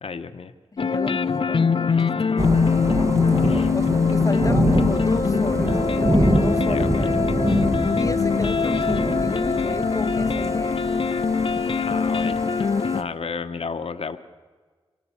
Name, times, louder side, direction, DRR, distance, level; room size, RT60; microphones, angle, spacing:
voice 1, 0.0-0.5 1.9-2.0 3.4-3.7 6.7-7.0 11.8-12.4 12.9-14.2, left 5 dB, 85° left, 0.9 m, -32 dB
voice 2, 0.7-2.1 2.4-3.8 4.1-7.1 8.0-10.9, left 2 dB, 35° left, 1.0 m, -32 dB
sound 1, 0.8-13.0, left 5 dB, 60° left, 0.6 m, -22 dB
Thunder / Rain, 2.4-13.0, right 1 dB, 30° right, 1.5 m, -26 dB
25.5 x 17.5 x 7.1 m
wide cardioid pair, 95°, 10 cm